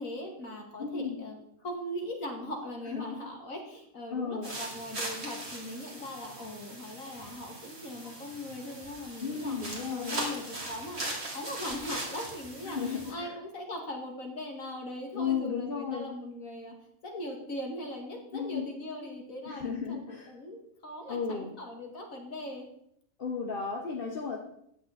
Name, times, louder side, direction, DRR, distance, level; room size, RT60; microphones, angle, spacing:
voice 1, 0.0-1.4 1.6-9.6 9.9-16.8 17.0-22.7, left 1 dB, 70° left, 1 dB, 2.5 m, -40 dB
voice 2, 0.8-1.2 2.9-3.1 4.1-4.5 9.2-10.2 12.6-13.3 15.1-16.1 18.3-18.7 19.4-20.3 21.1-21.5 23.2-24.4, left 6 dB, 40° left, 1 dB, 1.4 m, -34 dB
sound 1, 4.4-13.1, right 1 dB, 50° right, 3.2 m, -40 dB
15.0 x 10.0 x 4.2 m, 0.73 s
omnidirectional pair, 1.5 m